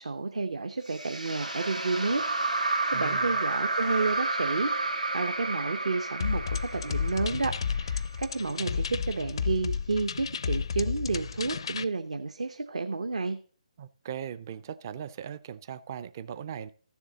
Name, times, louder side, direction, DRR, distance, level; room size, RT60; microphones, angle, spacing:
voice 1, 0.0-13.4, right 3 dB, 60° right, 0.7 m, -31 dB
sound 1, 0.9-8.2, right 2 dB, 90° right, 1.9 m, -31 dB
voice 2, 2.9-3.3 13.8-16.7, right 9 dB, 30° right, 0.4 m, -39 dB
sound 2, 6.2-11.8, left 6 dB, 45° left, 0.4 m, -32 dB
14.5 x 7.1 x 3.8 m
figure-of-eight pair, 145°, 4 cm